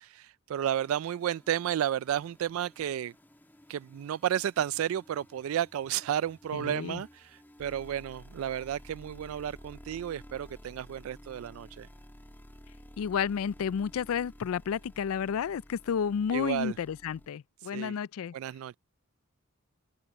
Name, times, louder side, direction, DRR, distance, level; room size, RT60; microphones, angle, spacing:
voice 1, 0.0-3.1 3.7-11.9 16.3-16.7 17.7-17.9 18.3-18.8, right 10 dB, 75° right, 0.3 m, -32 dB
sound 1, 0.8-17.3, equal, 10° left, 2.1 m, -53 dB
voice 2, 6.5-7.0 13.0-18.3, left 7 dB, 90° left, 0.4 m, -31 dB
open air
head